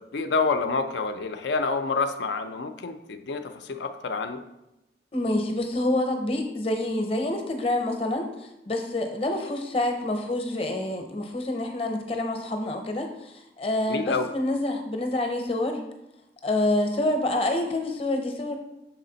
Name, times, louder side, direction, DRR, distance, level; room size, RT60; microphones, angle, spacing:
voice 1, 0.0-4.4 13.9-14.3, left 4 dB, 85° left, 8 dB, 0.4 m, -28 dB
voice 2, 5.1-15.8 16.4-18.6, left 1 dB, 35° left, 5 dB, 0.7 m, -27 dB
6.1 x 4.1 x 3.9 m, 0.91 s
head